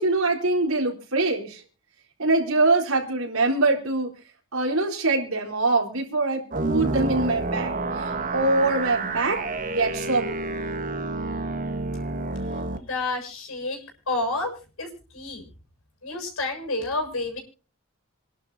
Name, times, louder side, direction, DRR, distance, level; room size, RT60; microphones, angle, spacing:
voice 1, 0.0-1.6 2.2-4.1 4.5-9.4 9.7-10.4, right 2 dB, 80° right, 0 dB, 4.2 m, -24 dB
sound 1, 6.5-12.8, right 2 dB, 40° right, 1.6 m, -29 dB
voice 2, 12.8-13.8 14.1-14.5 14.8-14.9 15.1-15.4 16.0-17.4, left 2 dB, 75° left, 4 dB, 7.0 m, -29 dB
27.5 x 11.5 x 2.8 m, 0.36 s
head